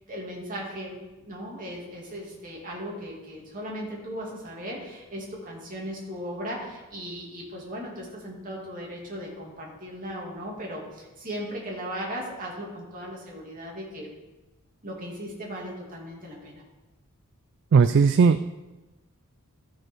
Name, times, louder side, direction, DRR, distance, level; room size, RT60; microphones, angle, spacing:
voice 1, 0.1-14.1 14.8-16.6, equal, 40° right, -2 dB, 2.5 m, -37 dB
voice 2, 17.7-18.4, right 5 dB, 55° right, 11 dB, 0.3 m, -17 dB
13.5 x 6.6 x 4.5 m, 1.1 s
head